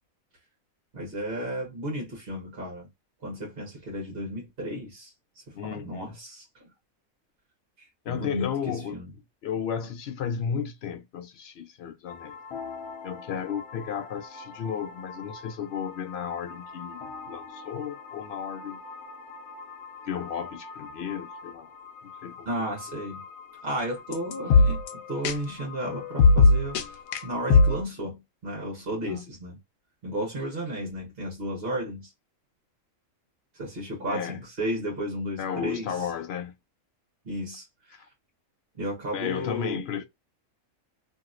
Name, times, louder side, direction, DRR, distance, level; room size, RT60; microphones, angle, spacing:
voice 1, 0.9-2.9 3.2-5.1 5.5-6.7 7.8-9.1 22.5-23.2 23.6-24.8 25.1-27.0 27.2-29.6 30.0-32.1 33.5-36.1 37.2-38.1 38.7-39.8, equal, 45° right, 1.3 m, -33 dB
voice 2, 5.6-6.2 8.0-9.0 9.4-12.4 13.0-18.8 20.0-21.7 22.0-22.5 29.1-29.3 34.0-34.4 35.4-36.6 37.9-38.1 39.1-40.0, left 7 dB, 65° left, 0.6 m, -33 dB
sound 1, 12.1-27.8, left 3 dB, 85° left, 1.1 m, -27 dB
2.9 x 2.8 x 2.4 m
omnidirectional pair, 1.4 m